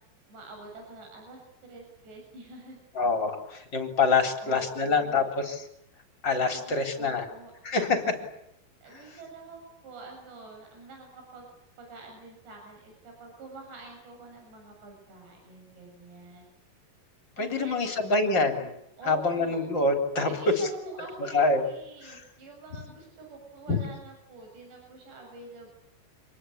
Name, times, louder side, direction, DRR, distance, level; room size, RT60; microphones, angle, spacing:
voice 1, 0.3-2.8 4.4-5.3 6.5-7.5 8.8-11.5 11.8-16.5 17.4-18.0 19.0-19.6 20.3-25.8, right 3 dB, 60° right, 2 dB, 9.1 m, -46 dB
voice 2, 3.0-5.6 6.2-7.3 7.6-8.2 8.9-9.0 17.4-18.7 19.1-20.3 21.3-21.6 22.0-22.2 23.7-23.8, left 3 dB, 25° left, 5 dB, 3.8 m, -26 dB
27.0 x 20.0 x 10.0 m, 0.80 s
omnidirectional pair, 5.5 m